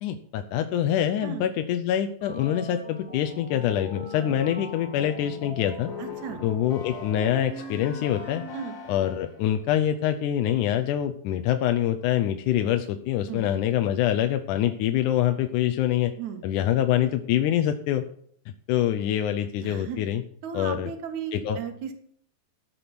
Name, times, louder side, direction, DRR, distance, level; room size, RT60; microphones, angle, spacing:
voice 1, 0.0-5.9 6.4-8.4 8.9-16.1 16.4-18.0 18.7-20.2 20.5-20.9 21.3-21.6, left 11 dB, 75° left, 7 dB, 2.1 m, -25 dB
sound 1, 2.2-9.5, left 3 dB, 55° left, 3.4 m, -40 dB
voice 2, 6.0-6.4 8.5-8.8 13.3-13.5 16.2-16.4 19.6-20.0 20.4-21.9, right 7 dB, 60° right, 5 dB, 2.9 m, -35 dB
14.0 x 7.0 x 5.9 m, 0.65 s
omnidirectional pair, 3.8 m